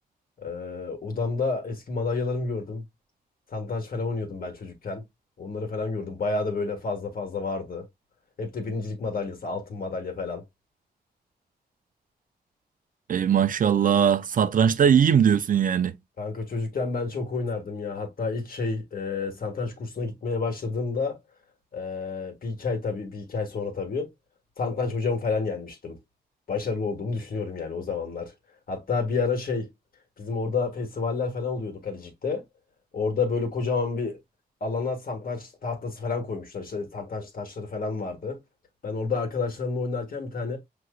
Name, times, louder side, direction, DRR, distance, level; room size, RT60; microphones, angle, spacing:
voice 1, 0.4-2.8 3.5-5.0 5.4-7.9 8.4-10.4 16.2-21.2 21.7-24.1 24.6-26.0 26.5-28.3 28.7-29.7 30.2-32.4 32.9-34.2 34.6-38.4 38.8-40.6, left 4 dB, 60° left, 1.5 m, -30 dB
voice 2, 13.1-15.9, right 8 dB, 55° right, 0.5 m, -20 dB
6.2 x 3.0 x 2.3 m
wide cardioid pair, 120°, 17 cm